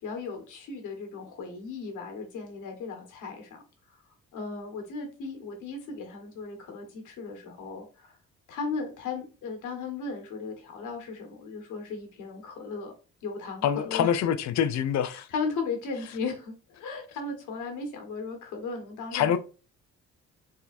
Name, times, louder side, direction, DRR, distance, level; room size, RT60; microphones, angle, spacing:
voice 1, 0.0-3.6 4.3-8.2 8.5-12.9 13.2-14.1 15.1-16.5 16.8-19.4, left 4 dB, 85° left, 1.6 m, -36 dB
voice 2, 13.6-15.3 19.1-19.4, left 9 dB, 65° left, 0.6 m, -25 dB
4.8 x 3.7 x 2.6 m
cardioid pair, 90°, 30 cm